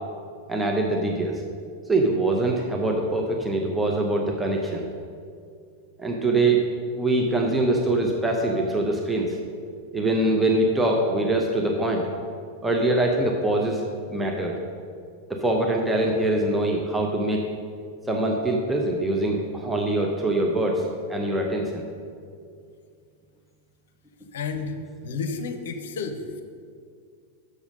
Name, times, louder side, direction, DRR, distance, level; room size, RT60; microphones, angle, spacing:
voice 1, 0.5-1.4 1.9-4.9 6.0-6.7 6.9-9.4 9.9-12.1 12.6-13.8 14.1-14.6 15.3-17.4 18.1-20.8 21.1-21.8, right 2 dB, 10° right, 0 dB, 0.7 m, -23 dB
voice 2, 24.3-24.8 25.0-26.4, left 4 dB, 60° left, 7 dB, 0.7 m, -31 dB
7.1 x 6.4 x 5.2 m, 2.3 s
figure-of-eight pair, 90°, 0 cm